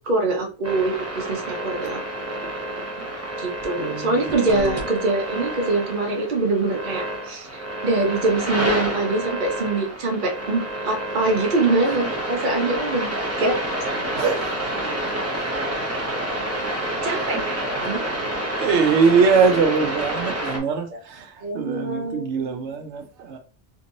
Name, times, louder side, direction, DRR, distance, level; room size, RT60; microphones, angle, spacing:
voice 1, 0.1-2.0 3.4-7.5 7.8-13.6 16.6-18.0 21.4-22.3, right 2 dB, 50° right, 1.0 m, -24 dB
sound 1, 0.6-20.6, right 1 dB, 15° right, 0.7 m, -28 dB
voice 2, 3.8-4.8 12.0-12.1 14.1-14.7 17.1-17.4 17.7-23.4, right 5 dB, 85° right, 0.9 m, -23 dB
3.6 x 2.9 x 2.6 m
omnidirectional pair, 1.1 m